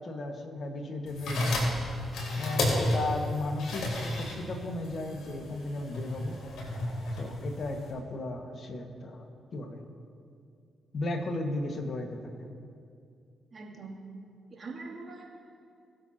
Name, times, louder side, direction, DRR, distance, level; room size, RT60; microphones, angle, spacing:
voice 1, 0.0-1.5 2.4-6.4 7.1-9.2 9.5-9.8 10.9-12.3, left 2 dB, 55° left, 3 dB, 1.7 m, -35 dB
sound 1, 1.1-7.9, left 1 dB, 75° left, 3.3 m, -32 dB
voice 2, 13.5-14.0 14.5-15.2, right 3 dB, 50° right, -3 dB, 2.9 m, -42 dB
22.0 x 8.0 x 3.0 m, 2.4 s
supercardioid pair, 50°, 0 cm